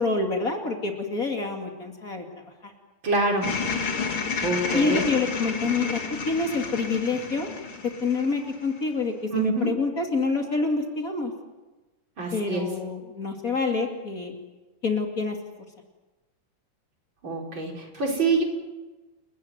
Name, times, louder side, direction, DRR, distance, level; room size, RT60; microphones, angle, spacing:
voice 1, 0.0-2.2 2.6-2.7 4.7-7.5 7.8-11.3 12.3-14.3 14.8-15.4, left 4 dB, 40° left, 2 dB, 3.0 m, -27 dB
voice 2, 3.0-3.6 4.4-5.1 9.3-9.7 12.2-12.7 17.2-18.4, right 3 dB, 60° right, 0 dB, 5.2 m, -26 dB
sound 1, 3.4-8.8, left 5 dB, 85° left, 3.2 m, -31 dB
29.5 x 15.0 x 9.4 m, 1.2 s
omnidirectional pair, 2.4 m